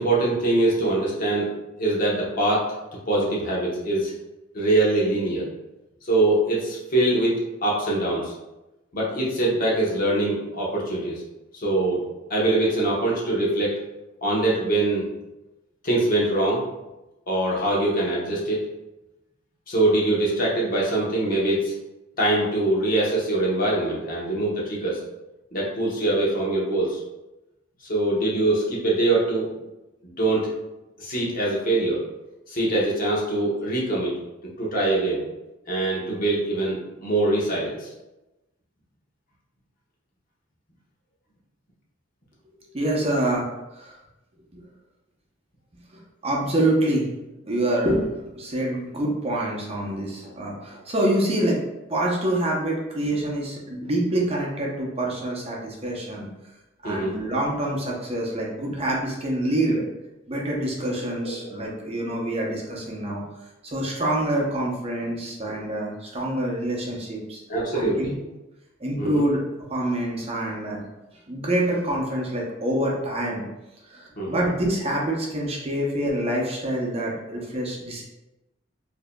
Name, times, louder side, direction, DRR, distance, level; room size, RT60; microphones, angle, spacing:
voice 1, 0.0-1.5 1.8-2.6 2.9-4.1 4.5-5.5 6.0-8.3 8.9-11.2 11.5-12.0 12.3-13.8 14.2-15.1 15.8-16.7 17.3-18.6 19.7-21.7 22.2-25.0 25.5-27.0 27.8-29.5 30.0-30.5 31.0-32.0 32.5-34.1 34.6-35.2 35.7-37.9 56.8-57.1 61.2-61.5 67.5-68.1 69.0-69.2 74.2-74.4, right 2 dB, 50° left, -4 dB, 1.0 m, -23 dB
voice 2, 42.7-43.5 43.7-44.0 44.5-44.6 46.2-47.1 47.5-51.6 51.9-56.3 56.8-59.8 60.3-63.2 63.6-67.4 67.7-68.1 68.8-69.4 69.7-70.8 71.3-73.4 73.9-78.0, right 1 dB, 30° right, -3 dB, 0.7 m, -26 dB
4.8 x 2.7 x 2.2 m, 1.0 s
head